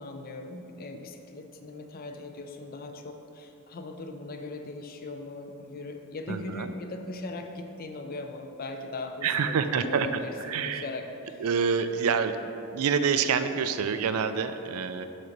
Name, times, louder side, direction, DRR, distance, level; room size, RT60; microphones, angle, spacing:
voice 1, 0.0-11.4, left 2 dB, 40° left, 5 dB, 0.5 m, -39 dB
voice 2, 6.3-6.7 9.2-10.1 10.5-10.8 11.4-12.4 12.7-15.1, right 6 dB, 75° right, 10 dB, 0.4 m, -27 dB
6.5 x 3.9 x 5.9 m, 2.9 s
head